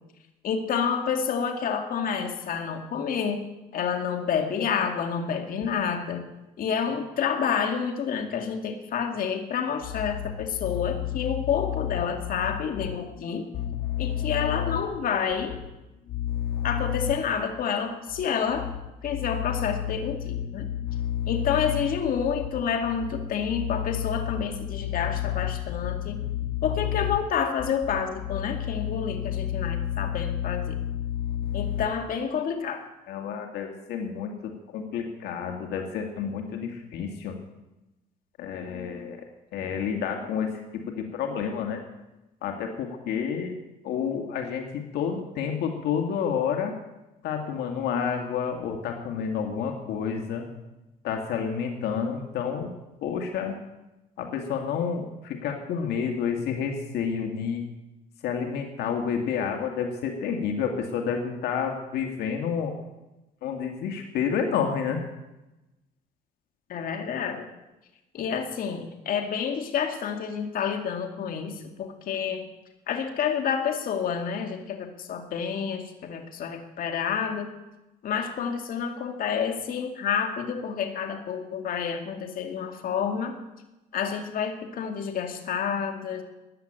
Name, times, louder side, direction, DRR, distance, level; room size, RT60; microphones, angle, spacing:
voice 1, 0.4-3.4 3.7-6.2 6.6-13.4 14.0-15.6 16.6-18.7 19.0-20.7 21.3-26.2 26.6-30.8 31.5-32.8 66.7-67.5 68.1-72.5 72.9-77.5 78.0-83.3 83.9-86.2, left 7 dB, 60° left, 4 dB, 2.3 m, -29 dB
voice 2, 10.6-11.4 13.4-14.8 16.1-17.1 19.3-19.8 20.2-21.8 23.5-24.3 24.6-27.1 28.5-31.8 33.1-37.4 38.4-39.2 39.5-41.8 42.4-43.6 43.8-46.7 47.2-50.5 51.0-52.7 53.0-53.6 54.2-57.6 58.2-62.8 63.4-65.1, left 8 dB, 75° left, 3 dB, 2.1 m, -30 dB
15.0 x 10.0 x 9.0 m, 1.0 s
cardioid pair, 110°, 17 cm